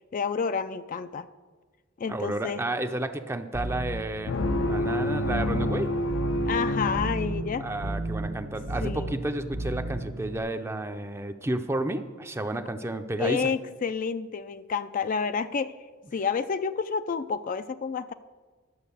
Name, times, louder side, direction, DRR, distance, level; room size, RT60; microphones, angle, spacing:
voice 1, 0.1-1.3 2.0-2.7 6.5-7.7 8.8-9.2 13.2-15.8 16.1-18.1, left 5 dB, 45° left, 12 dB, 0.4 m, -29 dB
voice 2, 2.1-4.3 4.7-5.9 7.6-13.4, right 1 dB, 15° right, 8 dB, 0.5 m, -31 dB
sound 1, 3.5-10.4, right 1 dB, 70° right, 1.1 m, -34 dB
sound 2, 4.3-7.8, left 1 dB, 85° left, 0.7 m, -28 dB
11.0 x 7.4 x 6.9 m, 1.4 s
head